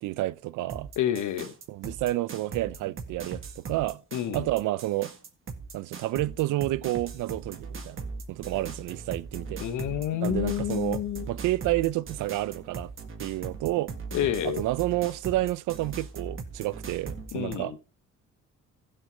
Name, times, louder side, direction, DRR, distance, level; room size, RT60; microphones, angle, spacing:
voice 1, 0.0-0.9 1.7-4.0 4.3-5.1 5.7-8.0 8.3-9.6 10.2-11.0 11.3-12.9 13.2-13.9 14.4-17.7, right 17 dB, 90° right, 0.6 m, -30 dB
sound 1, 0.7-17.6, right 4 dB, 45° right, 1.9 m, -39 dB
voice 2, 1.0-1.5 4.1-4.5 9.6-11.3 14.1-14.6 17.3-17.8, left 10 dB, 80° left, 1.2 m, -29 dB
15.5 x 5.6 x 4.0 m
cardioid pair, 90°, 30 cm